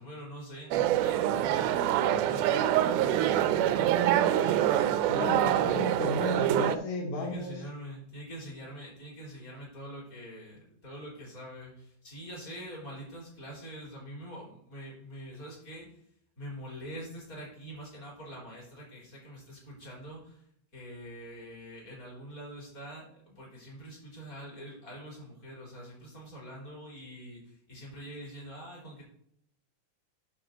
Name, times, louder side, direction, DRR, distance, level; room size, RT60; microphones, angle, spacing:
voice 1, 0.0-2.6 2.9-4.0 4.3-4.7 5.1-5.9 7.1-15.9 16.4-20.4 20.7-29.0, equal, 25° left, -2 dB, 3.5 m, -44 dB
sound 1, 0.7-6.8, right 11 dB, 80° right, 1.9 m, -25 dB
voice 2, 5.1-7.6, left 2 dB, 70° left, 1 dB, 1.3 m, -33 dB
11.5 x 6.2 x 4.0 m, 0.70 s
omnidirectional pair, 4.1 m